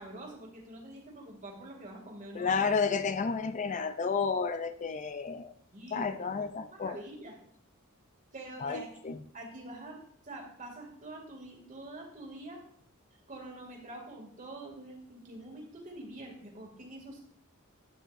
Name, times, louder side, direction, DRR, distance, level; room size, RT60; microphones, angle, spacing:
voice 1, 0.0-2.6 5.7-6.1 6.7-7.4 8.3-8.9 9.3-10.0 10.2-12.6 13.3-17.2, right 1 dB, 35° right, 1 dB, 2.3 m, -45 dB
voice 2, 2.3-5.5 5.9-7.0 8.6-9.2, left 5 dB, 35° left, 10 dB, 0.4 m, -31 dB
12.0 x 8.9 x 2.5 m, 0.63 s
head